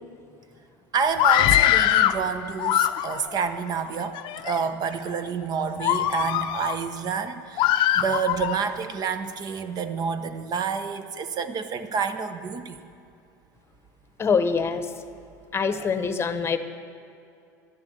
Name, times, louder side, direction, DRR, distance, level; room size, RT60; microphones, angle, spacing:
voice 1, 0.9-12.8, right 6 dB, 40° right, 10 dB, 1.0 m, -29 dB
Screaming, 1.1-2.2 2.6-3.3 4.0-4.6 5.1-5.3 5.8-6.8 7.6-8.6, left 13 dB, 55° left, 0.6 m, -22 dB
voice 2, 14.2-14.9 15.5-16.6, left 5 dB, 25° left, 10 dB, 1.0 m, -24 dB
11.5 x 10.5 x 6.5 m, 2.6 s
hypercardioid pair, 85°, 10 cm